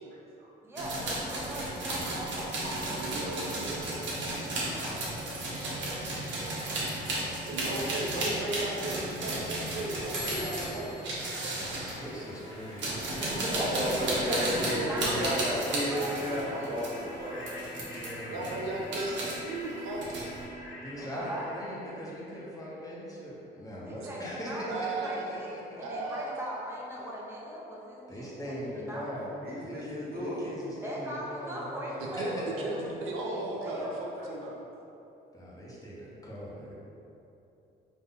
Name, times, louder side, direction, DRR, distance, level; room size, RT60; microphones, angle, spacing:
voice 1, 0.1-0.5 4.5-4.9 6.3-6.8 7.2-7.4 9.3-9.4 13.5-17.7 29.1-30.5 34.2-34.3, equal, 50° right, -6 dB, 1.4 m, -34 dB
voice 2, 0.6-2.6 4.4-5.0 14.0-17.2 21.0-21.5 23.8-29.2 30.8-33.9, equal, 10° right, -5 dB, 1.0 m, -40 dB
sound 1, 0.8-12.0 12.6-17.0 17.4-18.1 18.4-19.3 19.7-20.4, right 1 dB, 65° right, 1.2 m, -34 dB
voice 3, 2.9-3.9 7.5-11.1 11.4-11.9 14.3-15.5 18.3-20.3 24.7-25.2 25.8-26.3 32.1-34.5, right 2 dB, 85° right, -2 dB, 0.6 m, -36 dB
sound 2, 10.0-22.9, left 1 dB, 65° left, 1.3 m, -45 dB
voice 4, 11.5-14.3 17.8-18.5 20.8-25.8 28.1-29.2 29.6-32.9 35.3-36.7, equal, 15° left, -6 dB, 1.2 m, -40 dB
4.1 x 2.7 x 4.0 m, 2.9 s
supercardioid pair, 70°, 20 cm